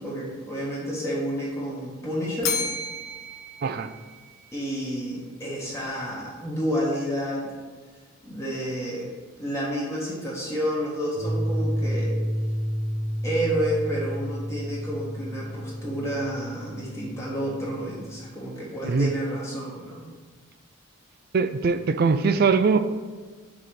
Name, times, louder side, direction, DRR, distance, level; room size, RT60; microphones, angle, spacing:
voice 1, 0.0-2.6 4.5-7.6 8.2-12.2 13.2-20.0, equal, 15° left, -5 dB, 1.0 m, -30 dB
Bell, 2.4-4.6, left 4 dB, 80° left, 0.8 m, -32 dB
voice 2, 3.6-3.9 18.8-19.1 21.3-22.8, right 4 dB, 45° right, 10 dB, 0.3 m, -21 dB
sound 1, 11.2-18.2, equal, 80° right, 1.3 m, -30 dB
4.9 x 4.1 x 5.9 m, 1.4 s
head